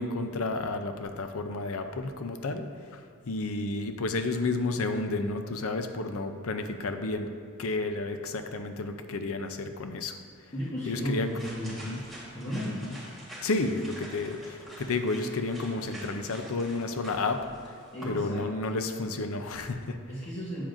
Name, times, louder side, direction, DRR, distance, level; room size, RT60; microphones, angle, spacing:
voice 1, 0.0-2.7 2.9-7.3 7.6-10.2 10.9-11.3 11.6-12.0 12.6-13.0 13.4-17.5 18.0-20.0, left 3 dB, 70° left, 7 dB, 0.6 m, -31 dB
voice 2, 10.5-11.8 12.3-12.7 17.9-18.5 20.1-20.6, equal, 30° left, -10 dB, 1.2 m, -34 dB
sound 1, 10.8-18.3, equal, ahead, 1.4 m, -46 dB
8.7 x 7.2 x 2.6 m, 2.3 s
head